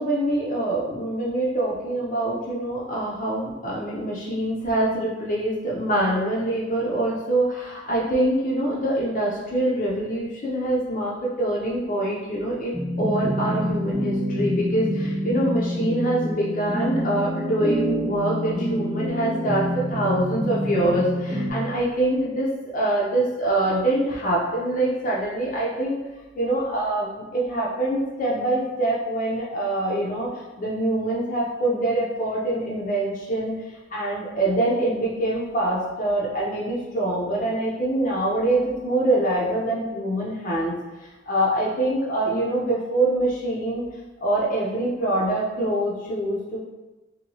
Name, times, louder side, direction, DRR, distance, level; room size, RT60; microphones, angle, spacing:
voice 1, 0.0-26.0 26.4-33.5 33.9-40.8 41.3-43.8 44.2-46.6, right 1 dB, 45° left, -5 dB, 0.5 m, -24 dB
sound 1, 12.7-21.5, equal, 5° right, 1.0 m, -27 dB
2.9 x 2.7 x 2.7 m, 1.1 s
head